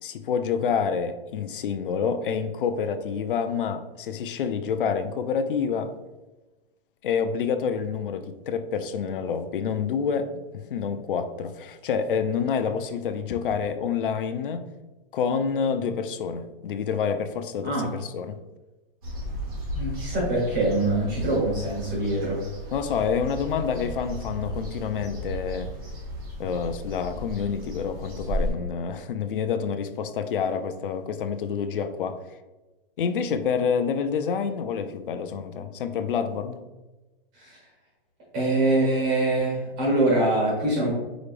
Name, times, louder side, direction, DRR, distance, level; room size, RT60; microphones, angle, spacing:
voice 1, 0.0-5.9 7.0-14.7 15.1-18.4 22.7-25.7 26.4-32.2 33.0-36.6, left 6 dB, 65° left, 10 dB, 0.5 m, -28 dB
voice 2, 17.6-17.9 19.7-22.5 37.4-37.6 38.3-40.9, right 2 dB, 20° right, -3 dB, 1.3 m, -24 dB
sound 1, 19.0-28.5, equal, 40° right, 1.4 m, -34 dB
5.0 x 3.2 x 2.5 m, 1.1 s
hypercardioid pair, 175°, 29 cm